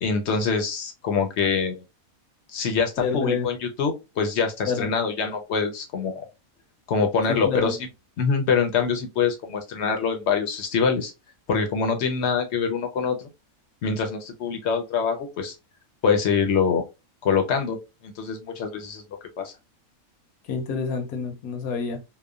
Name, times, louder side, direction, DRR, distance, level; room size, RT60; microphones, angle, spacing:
voice 1, 0.0-1.8 2.5-6.2 6.9-7.8 8.2-11.1 11.5-13.3 13.8-15.5 16.0-16.8 17.2-17.8 18.0-19.0 19.4-19.5, left 5 dB, 60° left, 0.8 m, -24 dB
voice 2, 3.0-3.5 4.7-4.9 7.3-7.7 20.5-22.0, left 5 dB, 85° left, 1.1 m, -27 dB
2.9 x 2.1 x 2.3 m
omnidirectional pair, 1.5 m